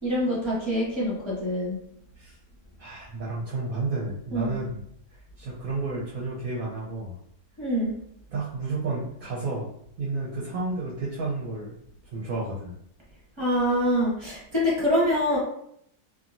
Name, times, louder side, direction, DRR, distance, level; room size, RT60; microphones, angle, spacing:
voice 1, 0.0-1.8 4.3-4.6 7.6-7.9 13.4-15.4, equal, 20° right, -7 dB, 0.9 m, -25 dB
voice 2, 2.8-4.8 5.4-7.2 8.3-9.7 10.0-11.8 12.1-12.7, right 3 dB, 65° right, -5 dB, 1.0 m, -31 dB
2.9 x 2.6 x 2.5 m, 0.71 s
omnidirectional pair, 1.7 m